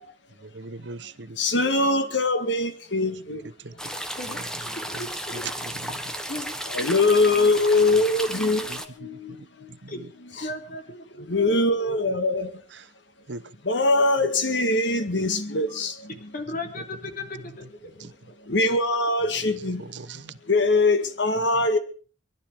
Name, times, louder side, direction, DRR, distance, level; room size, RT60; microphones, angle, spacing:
voice 1, 0.4-1.4 3.6-3.7 5.3-6.0 8.7-8.8 9.7-9.9 13.3-13.4 18.0-18.1 19.8-20.4, right 4 dB, 80° right, 0.9 m, -39 dB
voice 2, 1.4-3.8 6.7-9.7 10.4-10.5 11.3-12.5 13.6-16.1 18.4-19.9 20.4-21.8, left 2 dB, 80° left, 2.0 m, -23 dB
sound 1, 3.8-8.9, equal, 5° left, 1.5 m, -34 dB
voice 3, 4.9-5.4 6.3-6.9 9.9-10.0 10.4-12.1 16.3-17.9 18.3-18.4, left 2 dB, 50° left, 3.1 m, -37 dB
23.5 x 11.5 x 4.9 m
head